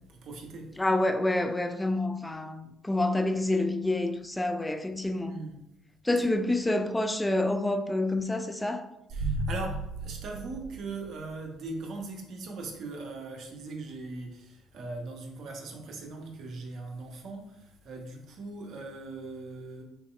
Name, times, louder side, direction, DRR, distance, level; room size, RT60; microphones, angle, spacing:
voice 1, 0.0-0.8 5.3-5.6 9.1-19.8, right 3 dB, 55° right, 0.6 m, -40 dB
voice 2, 0.8-5.4 6.0-8.9, left 2 dB, 10° left, 0.3 m, -28 dB
sound 1, 9.1-11.4, right 1 dB, 30° right, 1.3 m, -34 dB
2.9 x 2.8 x 2.3 m
figure-of-eight pair, 50°, 0 cm